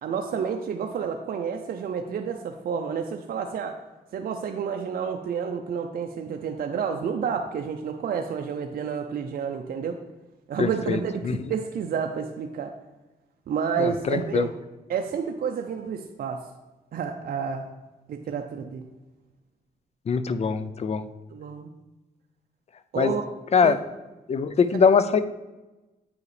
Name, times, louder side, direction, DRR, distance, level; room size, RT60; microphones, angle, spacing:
voice 1, 0.0-3.8 4.1-10.0 10.5-12.7 13.5-14.5 14.9-16.5 16.9-17.7 18.1-18.9 21.3-21.7 22.9-23.3 23.6-23.7 24.7-24.9, right 6 dB, 65° right, 4 dB, 0.5 m, -30 dB
voice 2, 10.6-11.4 13.8-14.4 20.1-21.0 23.0-23.1 23.5-23.8 24.3-25.2, left 6 dB, 40° left, 12 dB, 0.4 m, -22 dB
8.4 x 4.7 x 3.3 m, 1.1 s
cardioid pair, 70°, 16 cm